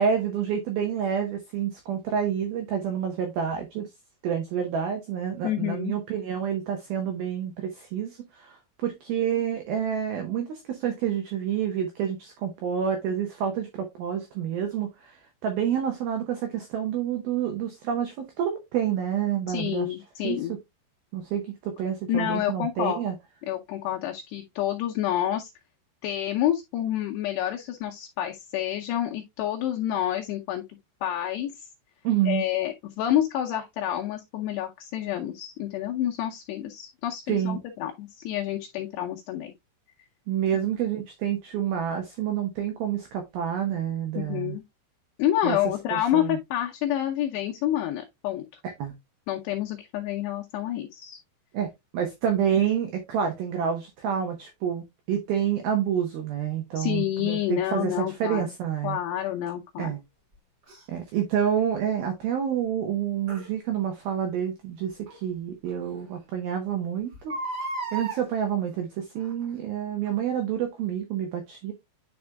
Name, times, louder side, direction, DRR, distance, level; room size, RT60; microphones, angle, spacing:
voice 1, 0.0-3.9 4.2-19.9 20.2-20.4 21.1-23.2 32.0-32.4 37.3-37.6 40.3-44.6 45.4-45.6 45.9-46.4 48.8-48.9 51.5-59.0 59.8-60.0 60.9-67.4 67.9-71.7, right 8 dB, 75° right, 2.3 m, -28 dB
voice 2, 5.4-6.0 19.5-20.5 22.1-23.0 23.5-25.5 26.0-31.6 32.3-39.5 44.3-44.6 45.2-48.4 49.3-51.2 56.8-58.5 58.8-60.0, left 12 dB, 80° left, 2.6 m, -28 dB
Crying sobbing, 60.7-60.8 63.3-63.5 65.1-65.2 65.7-65.8 66.0-66.1 67.1-68.2 69.2-69.5 70.1-70.2, right 3 dB, 30° right, 4.3 m, -34 dB
9.7 x 5.2 x 2.3 m
omnidirectional pair, 5.5 m